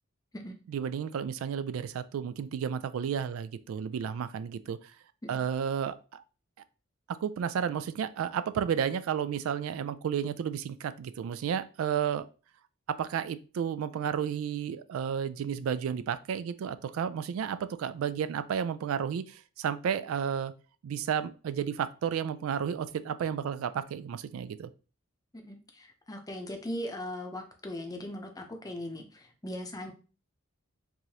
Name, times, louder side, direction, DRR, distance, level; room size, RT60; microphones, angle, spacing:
voice 1, 0.7-4.8 5.3-6.2 7.1-12.3 12.9-20.5 20.8-24.7, right 8 dB, 85° right, 14 dB, 0.3 m, -32 dB
voice 2, 25.3-29.9, left 1 dB, 20° left, 4 dB, 0.6 m, -39 dB
4.7 x 2.6 x 2.8 m, 0.35 s
head